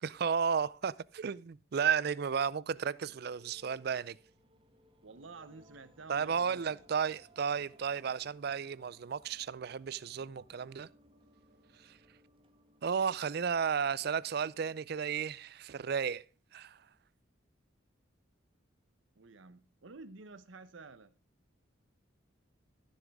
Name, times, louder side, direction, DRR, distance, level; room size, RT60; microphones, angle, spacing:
voice 1, 0.0-4.2 6.1-10.9 11.8-12.0 12.8-16.2 16.5-16.8, right 6 dB, 55° right, 0.4 m, -33 dB
sound 1, 3.0-16.0, equal, 25° right, 1.2 m, -65 dB
voice 2, 5.0-6.8 19.2-21.1, right 3 dB, 75° right, 0.8 m, -51 dB
13.5 x 7.2 x 3.5 m
head